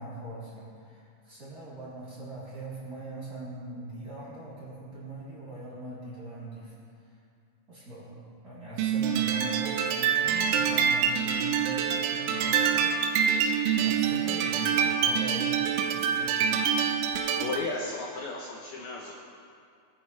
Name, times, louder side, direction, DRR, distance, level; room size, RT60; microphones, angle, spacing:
voice 1, 0.0-6.7 7.7-13.4 13.8-15.6 15.9-16.6, right 1 dB, 20° right, -9 dB, 3.6 m, -42 dB
sound 1, 8.8-17.7, right 7 dB, 80° right, 3.0 m, -26 dB
voice 2, 17.4-19.1, left 3 dB, 80° left, -2 dB, 2.2 m, -34 dB
23.0 x 10.0 x 3.4 m, 2.3 s
omnidirectional pair, 5.9 m